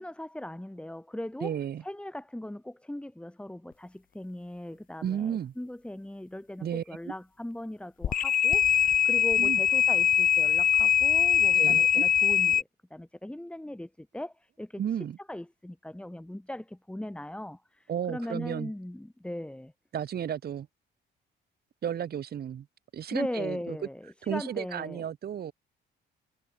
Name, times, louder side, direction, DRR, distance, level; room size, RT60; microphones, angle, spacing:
voice 1, 0.0-1.5 1.8-14.8 15.3-19.7 23.1-25.0, left 1 dB, 5° left, 1.7 m, -39 dB
voice 2, 1.4-1.8 5.0-5.5 6.6-6.8 9.4-9.6 11.6-12.1 14.8-15.2 17.9-18.7 19.9-20.7 21.8-22.7 22.9-23.8 24.2-25.5, right 9 dB, 50° right, 1.1 m, -33 dB
sound 1, 8.0-12.6, left 9 dB, 45° left, 0.5 m, -22 dB
cardioid pair, 90°, 20 cm